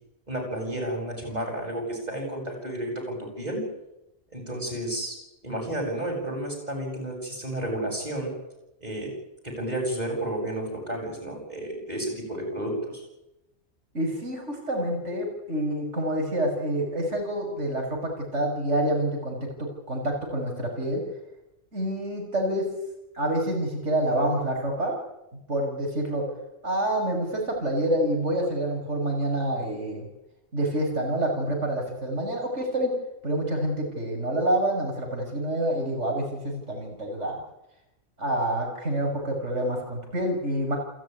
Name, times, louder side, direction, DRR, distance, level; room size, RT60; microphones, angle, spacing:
voice 1, 0.3-3.6 4.3-5.1 5.4-8.3 8.8-9.1 9.4-13.0, right 1 dB, 35° right, 1 dB, 8.0 m, -31 dB
voice 2, 13.9-21.0 21.7-22.7 23.1-25.0 25.5-26.2 26.6-30.0 30.5-33.0 33.2-37.4 38.2-40.8, right 1 dB, 90° right, 1 dB, 6.5 m, -27 dB
29.0 x 14.0 x 9.7 m, 0.91 s
omnidirectional pair, 1.2 m